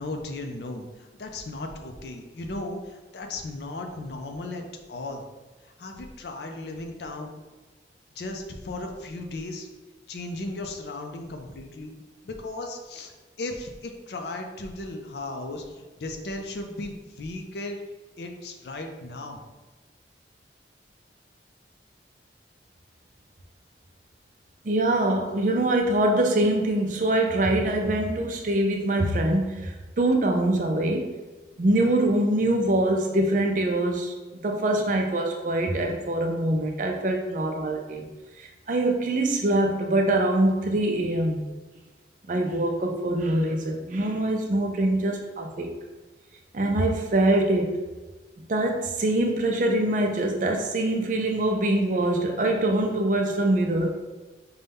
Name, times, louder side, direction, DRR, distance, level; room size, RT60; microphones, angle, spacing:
voice 1, 0.0-4.6 4.9-5.2 5.6-7.4 8.2-9.7 10.1-17.8 18.2-19.4 31.5-31.6, left 2 dB, 65° left, 3 dB, 0.5 m, -36 dB
voice 2, 24.6-31.1 31.6-38.1 38.4-41.5 42.3-45.7 46.5-47.8 48.5-53.9, right 1 dB, 45° right, 3 dB, 0.4 m, -24 dB
5.3 x 2.2 x 3.4 m, 1.2 s
head